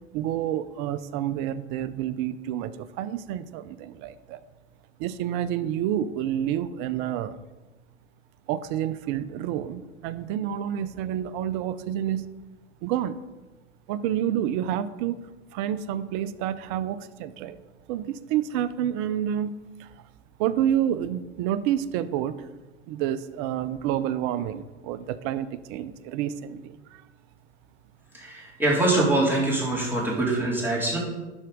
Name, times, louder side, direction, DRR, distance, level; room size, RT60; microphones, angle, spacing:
voice 1, 0.1-4.4 5.0-7.4 8.5-12.3 12.8-13.1 13.9-15.2 15.5-17.6 17.9-19.5 19.8-19.9 20.4-22.3 22.9-27.0, right 10 dB, 45° right, 14 dB, 0.6 m, -29 dB
voice 2, 28.1-31.0, right 2 dB, 5° right, -5 dB, 3.3 m, -24 dB
11.5 x 4.5 x 5.1 m, 1.2 s
hypercardioid pair, 110°, 38 cm